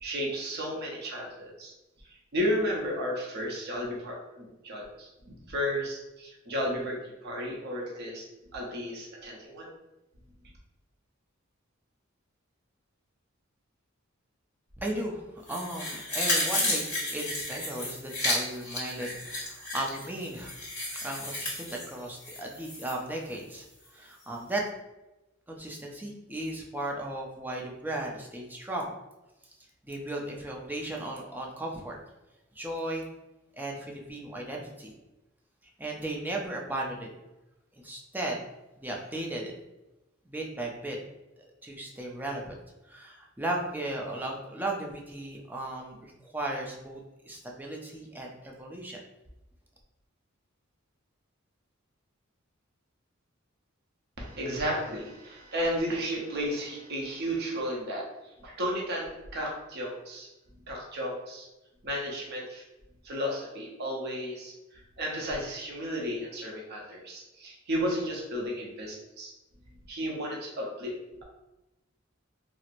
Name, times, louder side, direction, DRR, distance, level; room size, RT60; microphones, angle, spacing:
voice 1, 0.0-1.7 2.3-5.1 5.5-8.3 8.5-9.7 54.2-60.3 60.7-61.5 61.8-62.6 63.0-69.3 69.9-70.9, equal, 55° right, -2 dB, 0.7 m, -33 dB
voice 2, 14.8-20.6 21.0-24.6 25.5-28.9 29.4-29.5 29.8-32.0 32.5-33.1 33.5-34.9 35.6-37.1 37.8-38.4 38.8-39.5 40.3-41.0 41.4-42.5 42.8-49.0, right 1 dB, 10° right, -1 dB, 0.5 m, -36 dB
sound 1, 15.5-22.9 23.3-23.4, left 1 dB, 10° left, 1.2 m, -32 dB
4.3 x 2.0 x 2.5 m, 0.98 s
head